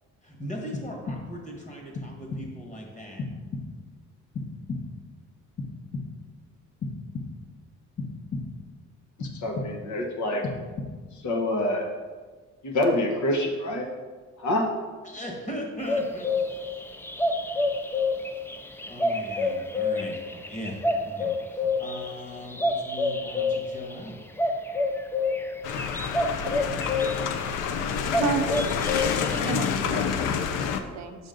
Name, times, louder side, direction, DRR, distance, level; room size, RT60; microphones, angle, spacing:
voice 1, 0.2-3.3 15.0-16.5 18.2-18.3 18.9-24.2, equal, 25° left, 0 dB, 1.7 m, -39 dB
sound 1, 0.7-1.5 1.9-2.7 3.2-4.0 4.3-5.1 5.6-6.4 6.8-7.6 8.0-8.8 9.2-10.0 10.4-11.2, left 3 dB, 40° left, 1.0 m, -36 dB
voice 2, 9.2-10.4 11.2-11.9 12.6-13.8 14.4-14.7, left 1 dB, 70° left, 1 dB, 1.2 m, -26 dB
sound 2, 15.8-27.3 27.6-29.7, left 2 dB, 10° left, 0.4 m, -28 dB
sound 3, 25.6-30.8, left 7 dB, 90° left, 0.6 m, -28 dB
voice 3, 27.1-27.8 28.2-28.6 29.4-31.3, right 7 dB, 65° right, 6 dB, 0.7 m, -33 dB
6.2 x 5.2 x 3.9 m, 1.4 s
cardioid pair, 90°, 30 cm